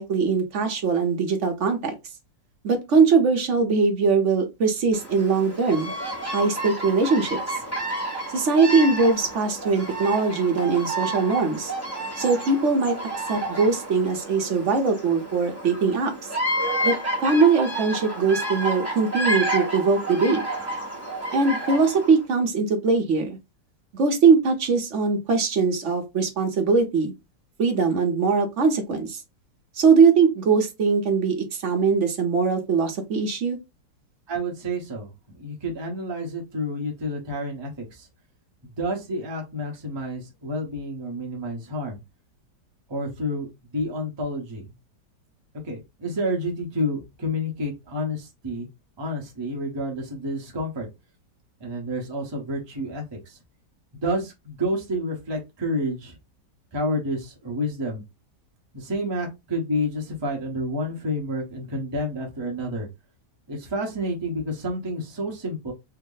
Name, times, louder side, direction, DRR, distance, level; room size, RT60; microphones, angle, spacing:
voice 1, 0.0-2.0 2.6-5.9 6.3-7.4 8.3-11.7 12.2-12.9 13.3-16.1 16.8-16.9 17.2-20.4 21.3-23.4 23.9-27.1 27.6-29.2 29.8-33.6, right 4 dB, 55° right, 0.9 m, -21 dB
Bird vocalization bird call bird song, 4.9-22.2, right 1 dB, 10° left, 0.9 m, -30 dB
voice 2, 34.3-38.1 38.6-42.0 42.9-44.7 45.6-48.7 49.0-50.9 51.6-53.4 53.9-56.2 56.7-58.0 58.7-62.9 63.5-65.7, equal, 20° right, 0.7 m, -29 dB
3.4 x 2.0 x 3.8 m
omnidirectional pair, 1.9 m